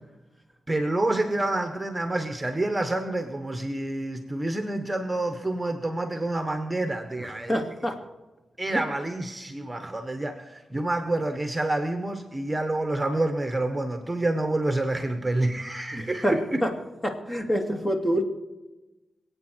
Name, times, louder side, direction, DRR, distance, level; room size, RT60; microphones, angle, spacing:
voice 1, 0.7-7.6 8.6-16.6, right 2 dB, 15° right, 6 dB, 1.4 m, -28 dB
voice 2, 7.5-8.0 8.7-8.8 15.9-16.7 17.0-18.2, equal, 20° left, 2 dB, 2.6 m, -26 dB
26.0 x 8.8 x 4.7 m, 1.1 s
cardioid pair, 65°, 0 cm